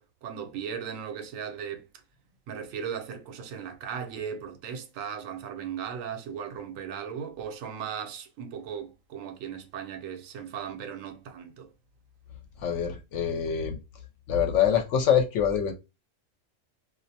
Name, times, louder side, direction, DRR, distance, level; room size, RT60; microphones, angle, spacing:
voice 1, 0.0-1.9 2.5-11.7, right 7 dB, 80° right, 1.0 m, -37 dB
voice 2, 12.6-13.8 14.3-15.7, left 8 dB, 75° left, 0.9 m, -25 dB
2.3 x 2.1 x 2.7 m
omnidirectional pair, 1.4 m